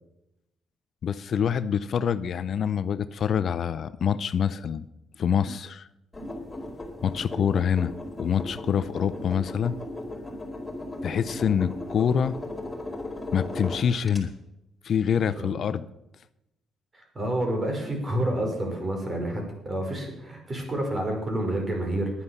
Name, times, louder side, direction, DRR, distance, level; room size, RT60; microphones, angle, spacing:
voice 1, 1.0-4.9 5.2-5.9 7.0-7.9 8.2-9.8 11.0-12.4 13.3-14.3 14.8-15.9, left 7 dB, 60° left, 14 dB, 0.6 m, -26 dB
sound 1, 6.1-14.2, left 1 dB, 15° left, 5.1 m, -37 dB
voice 2, 16.9-22.2, right 1 dB, 30° right, 2 dB, 5.4 m, -29 dB
12.0 x 9.7 x 7.2 m, 0.88 s
cardioid pair, 90°, 0 cm